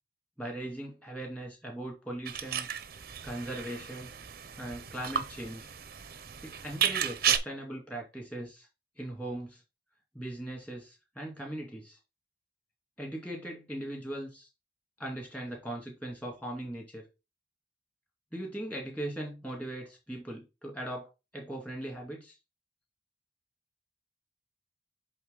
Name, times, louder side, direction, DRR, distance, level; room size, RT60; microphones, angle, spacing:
voice 1, 0.4-2.7 3.2-4.1 4.6-5.7 6.4-8.7 9.0-9.6 10.1-12.0 13.0-14.5 15.0-17.1 18.3-21.1 21.3-22.4, right 1 dB, 5° left, 2.4 m, -39 dB
sound 1, 2.3-7.4, right 9 dB, 50° right, 0.7 m, -33 dB
8.0 x 3.6 x 3.9 m
head